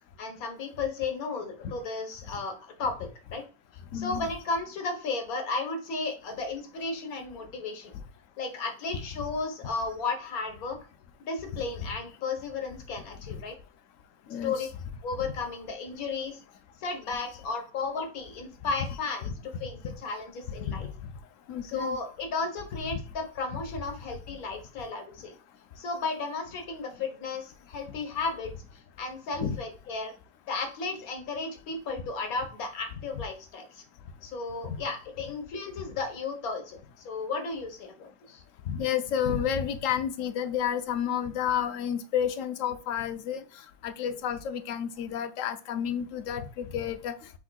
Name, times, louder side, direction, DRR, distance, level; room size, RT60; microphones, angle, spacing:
voice 1, 0.2-3.4 3.9-7.9 8.4-10.8 11.2-13.5 14.4-14.7 15.0-16.4 16.8-20.9 21.6-25.3 25.8-28.5 29.0-30.1 30.5-33.8 34.2-38.4 44.0-44.2, left 4 dB, 90° left, 5 dB, 1.5 m, -34 dB
voice 2, 3.9-4.3 11.8-11.9 14.3-14.7 19.2-19.3 20.6-20.8 21.5-22.0 22.9-23.0 29.4-29.6 34.6-34.8 38.7-43.4 43.8-47.2, left 8 dB, 70° left, 10 dB, 0.9 m, -30 dB
5.9 x 3.6 x 2.2 m, 0.35 s
omnidirectional pair, 1.5 m